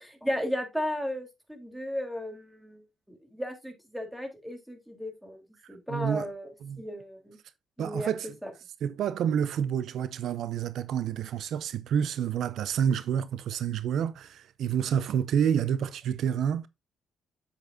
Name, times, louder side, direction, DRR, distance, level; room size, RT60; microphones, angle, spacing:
voice 1, 0.2-2.8 3.1-5.4 5.7-6.5 6.8-7.4 7.8-8.1 8.4-8.5, equal, 5° right, 3.3 m, -34 dB
voice 2, 5.9-6.3 6.6-6.8 7.8-8.4 8.8-16.7, right 8 dB, 75° right, 0.6 m, -28 dB
9.0 x 7.8 x 2.5 m
cardioid pair, 90°, 0 cm